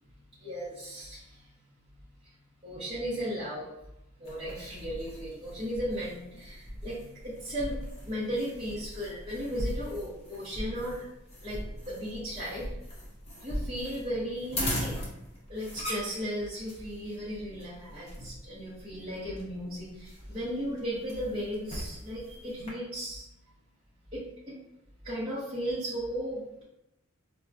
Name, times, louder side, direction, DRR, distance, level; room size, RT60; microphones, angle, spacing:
voice 1, 0.4-1.5 2.2-2.3 2.6-3.7 4.2-11.0 11.4-12.7 13.4-23.2 24.1-24.6 25.0-26.6, equal, 25° right, -11 dB, 0.8 m, -36 dB
sound 1, 4.2-22.7, equal, 30° left, 0.8 m, -40 dB
4.2 x 2.2 x 2.5 m, 0.84 s
head